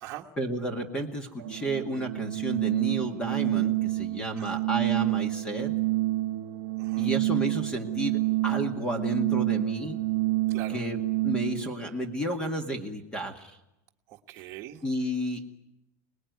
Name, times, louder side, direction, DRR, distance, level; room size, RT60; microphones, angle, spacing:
voice 1, 0.4-5.8 7.0-10.0 10.7-13.6 14.8-15.6, equal, 10° left, 6 dB, 2.0 m, -32 dB
Organ, 1.4-11.7, right 18 dB, 55° right, 1.1 m, -28 dB
voice 2, 6.8-7.2 10.5-10.8 14.1-14.8, right 13 dB, 30° right, -1 dB, 1.6 m, -42 dB
29.5 x 20.0 x 9.5 m, 0.92 s
supercardioid pair, 165°, 9 cm